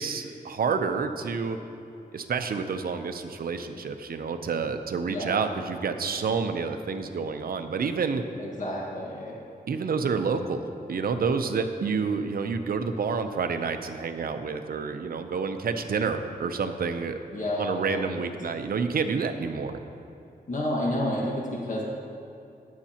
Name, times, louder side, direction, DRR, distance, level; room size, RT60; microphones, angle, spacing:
voice 1, 0.0-1.6 2.1-8.2 9.7-17.2 17.6-19.8, right 5 dB, 70° right, 7 dB, 0.7 m, -29 dB
voice 2, 5.1-5.5 8.4-9.3 17.3-18.2 20.5-21.8, left 1 dB, 50° left, -4 dB, 1.7 m, -30 dB
19.0 x 7.3 x 2.9 m, 2.7 s
wide cardioid pair, 130°, 16 cm